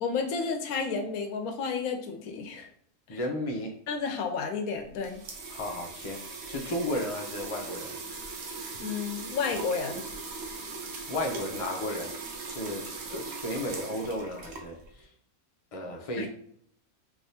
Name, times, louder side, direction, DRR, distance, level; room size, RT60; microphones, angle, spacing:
voice 1, 0.0-2.7 3.1-3.2 3.9-5.2 8.8-10.0 16.2-16.3, left 5 dB, 75° left, 6 dB, 1.0 m, -31 dB
voice 2, 3.1-3.7 5.5-6.2 6.5-8.0 11.1-12.2 12.5-12.8 13.1-15.1 15.7-16.3, left 1 dB, 50° left, 1 dB, 0.4 m, -33 dB
sound 1, 4.7-15.0, right 4 dB, 65° right, 0.7 m, -40 dB
3.4 x 2.8 x 2.7 m, 0.66 s
omnidirectional pair, 1.6 m